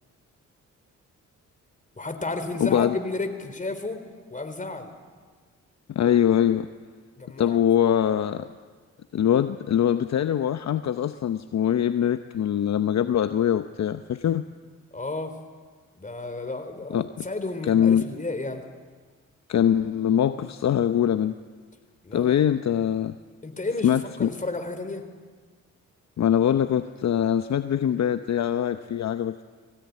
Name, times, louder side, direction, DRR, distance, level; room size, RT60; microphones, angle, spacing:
voice 1, 2.0-4.0 4.3-4.9 7.2-7.6 14.9-15.3 16.0-18.6 22.0-22.3 23.4-25.0, left 2 dB, 25° left, 7 dB, 3.9 m, -32 dB
voice 2, 2.6-3.0 5.9-6.7 7.4-8.5 9.1-14.4 16.9-17.2 17.7-18.1 19.5-21.3 22.1-23.2 23.8-24.3 26.2-29.4, left 9 dB, 55° left, 10 dB, 0.9 m, -23 dB
21.0 x 16.5 x 9.6 m, 1.5 s
supercardioid pair, 60°, 32 cm